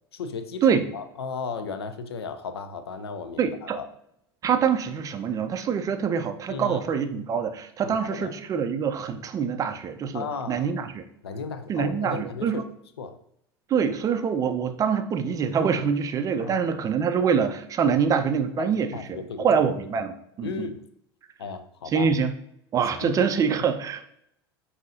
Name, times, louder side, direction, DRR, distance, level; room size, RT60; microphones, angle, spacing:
voice 1, 0.1-0.7 0.9-3.9 6.5-6.8 7.8-8.4 10.1-10.7 11.2-12.6 13.0-13.2 16.4-16.8 17.8-18.0 18.6-19.5 20.4-20.8 21.4-22.1 23.0-23.2, left 5 dB, 75° left, 9 dB, 0.4 m, -35 dB
voice 2, 3.4-3.8 4.4-11.0 11.7-12.6 13.7-20.1 20.4-20.7 21.9-22.3 22.7-24.0, right 6 dB, 25° right, 8 dB, 0.3 m, -25 dB
5.2 x 2.7 x 2.6 m, 0.74 s
figure-of-eight pair, 75°, 14 cm